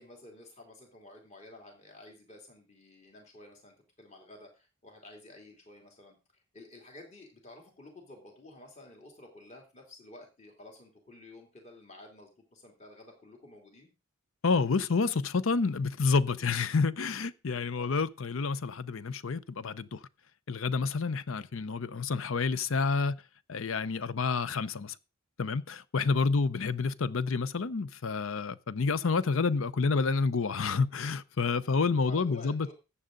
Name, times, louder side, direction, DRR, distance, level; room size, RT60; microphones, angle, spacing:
voice 1, 0.0-6.2 6.5-13.9 17.7-18.0 32.1-32.7, left 2 dB, 30° left, 2.9 m, -52 dB
voice 2, 14.4-20.0 20.5-23.2 23.5-24.9 25.4-32.7, left 4 dB, 65° left, 0.6 m, -29 dB
14.0 x 8.7 x 3.9 m
head